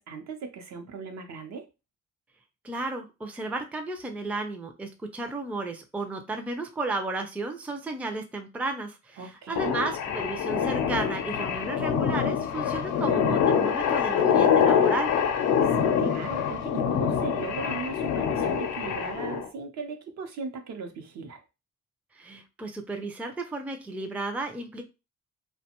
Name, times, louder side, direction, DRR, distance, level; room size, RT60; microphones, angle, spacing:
voice 1, 0.0-1.6 9.2-9.7 15.6-21.4, right 5 dB, 65° right, 4 dB, 0.7 m, -38 dB
voice 2, 2.6-15.1 22.1-24.8, right 2 dB, 5° right, 4 dB, 0.4 m, -33 dB
sound 1, 9.6-19.5, left 7 dB, 90° left, 0.6 m, -25 dB
2.5 x 2.2 x 2.8 m, 0.28 s
cardioid pair, 90°, 30 cm